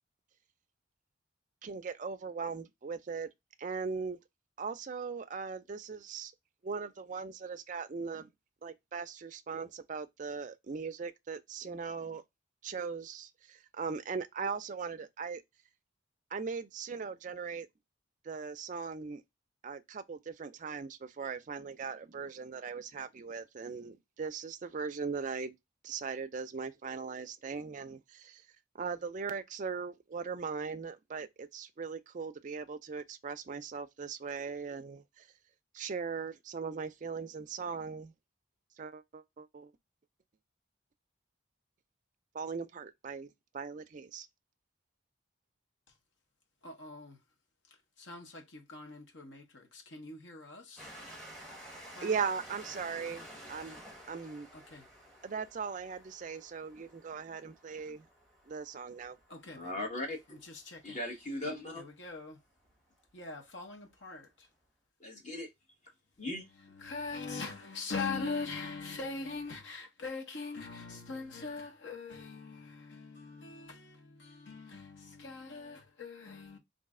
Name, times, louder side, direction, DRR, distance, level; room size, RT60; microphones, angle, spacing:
voice 1, 1.6-3.3 3.6-4.2 4.6-6.3 6.6-8.3 8.6-12.2 12.6-15.4 16.3-17.7 18.2-19.2 19.6-25.6 25.8-28.4 28.7-35.3 35.7-38.1 38.8-39.7 42.3-44.3 52.0-53.8 54.1-54.5 55.2-58.1 58.5-59.2, right 5 dB, 40° right, 0.4 m, -39 dB
voice 2, 46.6-47.2 48.0-50.9 51.9-52.2 54.5-54.9 59.3-59.8 60.3-61.0 61.7-62.4 63.1-64.5 66.5-76.6, left 4 dB, 70° left, 0.9 m, -42 dB
Train, 50.8-61.9 62.7-62.8 63.0-63.1, right 1 dB, ahead, 1.0 m, -52 dB
voice 3, 59.5-60.4 60.8-61.8 65.0-65.5 66.2-66.4, left 1 dB, 35° left, 1.2 m, -38 dB
3.1 x 2.6 x 3.6 m
head